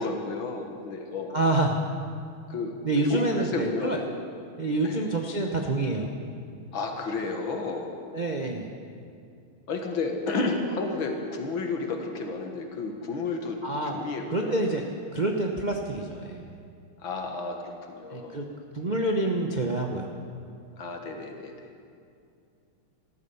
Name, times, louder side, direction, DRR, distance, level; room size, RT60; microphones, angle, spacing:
voice 1, 0.0-1.3 2.5-2.8 3.1-4.1 4.8-5.1 6.7-7.9 9.7-13.6 13.9-14.6 17.0-18.4 20.8-21.7, left 3 dB, 70° left, 3 dB, 2.2 m, -32 dB
voice 2, 1.3-1.8 2.8-4.0 4.6-6.1 8.1-8.7 13.6-14.0 14.3-16.5 18.1-18.4 18.7-20.1, right 2 dB, 40° right, 1 dB, 0.6 m, -27 dB
14.0 x 13.0 x 7.1 m, 2.4 s
omnidirectional pair, 2.4 m